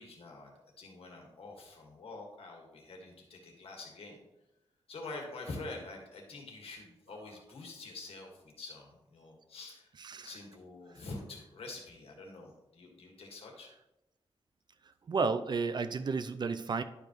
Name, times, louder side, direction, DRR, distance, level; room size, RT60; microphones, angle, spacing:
voice 1, 0.0-4.2 4.9-9.9 10.2-13.7, left 2 dB, 85° left, 1 dB, 1.7 m, -46 dB
voice 2, 10.0-10.3 15.1-16.8, right 4 dB, 50° right, 11 dB, 0.4 m, -32 dB
11.0 x 5.1 x 3.1 m, 0.93 s
wide cardioid pair, 130°, 10 cm